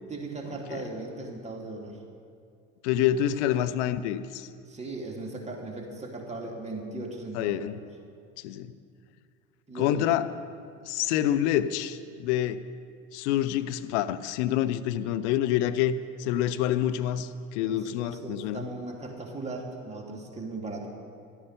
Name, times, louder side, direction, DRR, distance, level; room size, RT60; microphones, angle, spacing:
voice 1, 0.1-2.0 4.6-7.6 9.7-10.1 17.6-20.9, right 2 dB, 15° right, 0 dB, 2.5 m, -38 dB
voice 2, 2.8-4.5 7.3-7.7 8.4-8.7 9.7-10.3 10.9-12.6 13.1-18.6, left 11 dB, 60° left, 12 dB, 0.7 m, -27 dB
14.0 x 12.0 x 5.2 m, 2.2 s
figure-of-eight pair, 65°, 39 cm